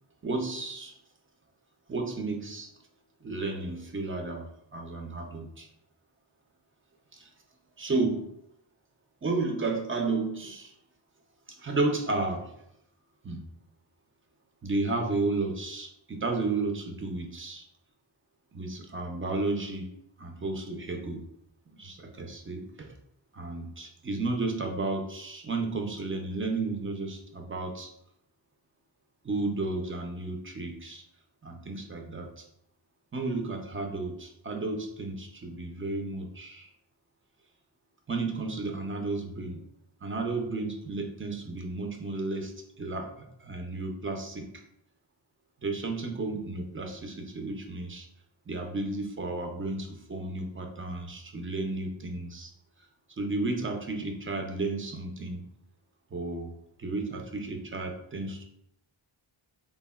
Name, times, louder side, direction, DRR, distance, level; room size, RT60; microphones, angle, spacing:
voice 1, 0.2-0.9 1.9-2.7 3.2-4.5 4.7-5.7 7.1-7.3 7.8-8.3 9.2-10.7 11.5-12.5 13.2-13.4 14.6-17.6 18.5-19.9 20.2-21.2 21.8-22.9 23.3-27.9 29.2-31.0 31.4-32.5 33.1-36.7 38.1-39.6 40.0-43.1 43.4-44.5 45.6-48.1 48.5-52.5 53.2-55.4 56.1-56.5 56.8-58.4, right 3 dB, 30° right, 3 dB, 0.4 m, -32 dB
3.3 x 2.1 x 2.2 m, 0.77 s
wide cardioid pair, 55°, 49 cm